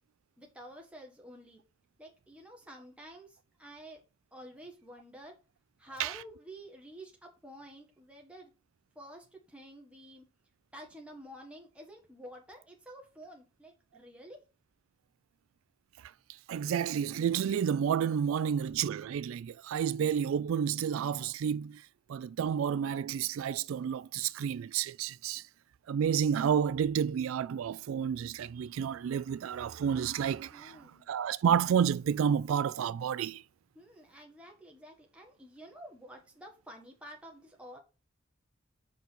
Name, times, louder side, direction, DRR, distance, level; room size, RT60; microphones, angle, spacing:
voice 1, 0.4-1.6 2.0-4.0 4.3-5.4 5.8-8.5 8.9-10.2 10.7-14.4 30.5-31.1 33.7-37.8, equal, 5° right, 1.5 m, -50 dB
voice 2, 16.5-21.8 22.1-25.4 25.9-30.8 31.1-33.4, right 8 dB, 90° right, 0.3 m, -30 dB
5.3 x 4.6 x 6.1 m
head